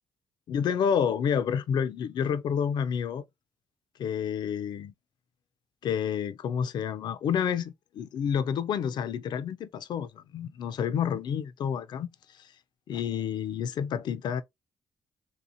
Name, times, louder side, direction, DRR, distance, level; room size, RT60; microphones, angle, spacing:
voice 1, 0.5-3.2 4.0-4.9 5.8-12.1 12.9-14.4, left 7 dB, 65° left, 0.4 m, -29 dB
3.4 x 2.7 x 2.5 m
cardioid pair, 95°, 8 cm